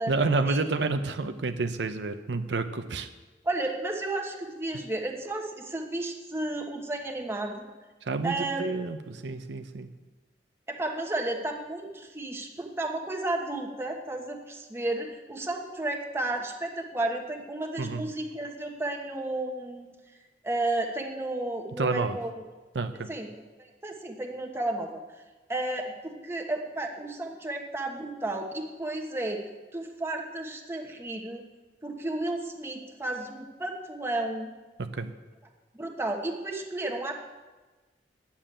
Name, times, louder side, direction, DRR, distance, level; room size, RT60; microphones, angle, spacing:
voice 1, 0.0-3.1 8.0-9.9 17.8-18.1 21.8-22.2 22.7-23.1 34.9-35.1, right 3 dB, 85° right, 8 dB, 0.7 m, -29 dB
voice 2, 3.4-7.7 8.2-8.6 10.7-19.9 20.4-22.4 23.1-23.3 23.6-25.0 25.5-29.4 29.7-31.4 31.8-34.5 35.7-37.2, right 2 dB, 15° right, 1 dB, 1.3 m, -32 dB
9.9 x 7.2 x 8.8 m, 1.3 s
head